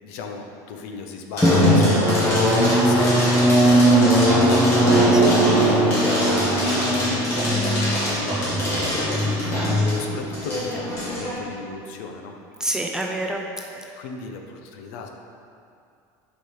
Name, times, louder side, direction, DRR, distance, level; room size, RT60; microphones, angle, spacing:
voice 1, 0.0-4.6 5.1-7.7 8.0-9.4 9.9-12.3 14.0-15.1, left 4 dB, 60° left, 3 dB, 0.8 m, -36 dB
sound 1, 1.4-11.3, equal, 30° left, 1.9 m, -27 dB
Drum, 1.4-10.7, right 1 dB, 10° left, 0.9 m, -19 dB
voice 2, 4.9-5.4 9.6-10.1 12.6-13.4, right 1 dB, 5° right, 1 dB, 0.3 m, -29 dB
6.6 x 5.1 x 5.6 m, 2.5 s
cardioid pair, 180°, 9 cm